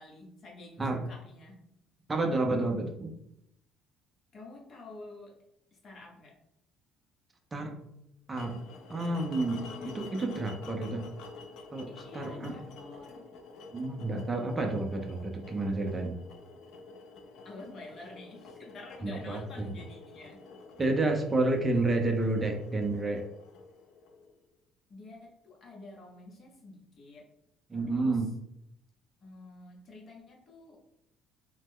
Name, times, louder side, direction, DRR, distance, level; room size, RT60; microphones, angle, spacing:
voice 1, 0.0-1.6 4.3-5.4 5.8-6.3 9.7-10.0 12.0-13.3 17.4-20.4 24.9-27.3 27.7-28.2 29.2-30.8, left 2 dB, 40° left, -1 dB, 0.9 m, -48 dB
voice 2, 2.1-3.1 7.5-7.8 8.3-8.6 8.9-11.0 11.7-12.6 13.7-16.2 19.0-19.7 20.8-23.3 27.7-28.3, right 2 dB, 20° right, 3 dB, 0.5 m, -30 dB
sound 1, 8.3-24.4, left 3 dB, 70° left, 0.5 m, -49 dB
3.1 x 2.0 x 3.5 m, 0.78 s
cardioid pair, 140°, 0 cm